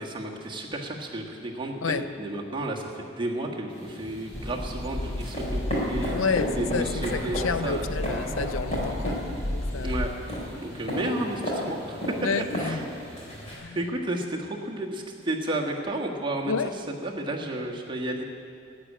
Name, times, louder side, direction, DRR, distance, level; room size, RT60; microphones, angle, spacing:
voice 1, 0.0-6.2 6.6-8.2 9.8-10.1 10.6-12.2 12.5-12.8 13.7-16.5 17.0-18.2, right 1 dB, 25° right, 1.5 m, -32 dB
sound 1, 3.7-13.5, equal, 30° left, 4.1 m, -34 dB
sound 2, 4.3-10.1, left 1 dB, 15° left, 0.4 m, -33 dB
voice 2, 6.1-9.9 11.6-11.8 12.2-12.8 13.5-13.8 16.5-16.7, left 5 dB, 75° left, 0.5 m, -30 dB
13.0 x 8.7 x 10.0 m
head